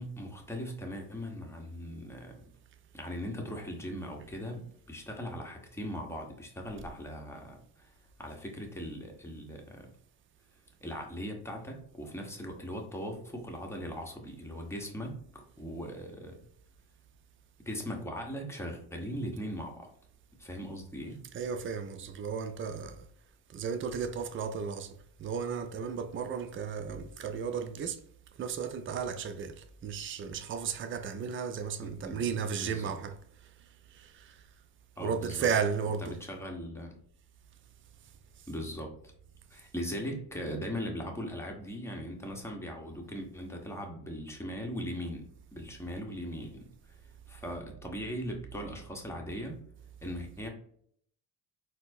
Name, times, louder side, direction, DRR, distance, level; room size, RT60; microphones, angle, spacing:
voice 1, 0.0-2.5 2.9-7.9 8.2-9.9 10.8-16.4 17.7-19.9 20.4-21.2 31.8-32.2 32.6-32.9 35.0-35.5 36.1-37.0 38.5-38.9 39.5-45.2 45.5-46.7 47.3-49.6 50.0-50.5, equal, 5° left, 0.9 m, -39 dB
voice 2, 21.3-23.0 23.5-28.0 28.4-33.2 33.9-34.4 35.0-36.2, right 6 dB, 35° right, 0.4 m, -34 dB
4.2 x 2.0 x 2.6 m
cardioid pair, 80°, 39 cm